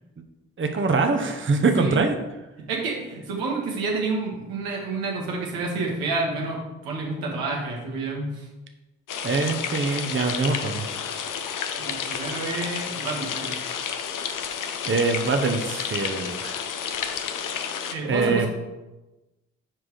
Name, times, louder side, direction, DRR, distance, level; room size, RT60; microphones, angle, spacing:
voice 1, 0.6-2.1 9.2-10.8 14.8-16.5 18.0-18.5, right 4 dB, 35° right, 5 dB, 1.0 m, -23 dB
voice 2, 2.6-8.5 11.8-13.6 17.9-18.5, right 3 dB, 85° right, -1 dB, 1.3 m, -29 dB
sound 1, 9.1-17.9, left 7 dB, 60° left, 0.8 m, -31 dB
6.0 x 4.9 x 4.8 m, 1.1 s
hypercardioid pair, 40°, 35 cm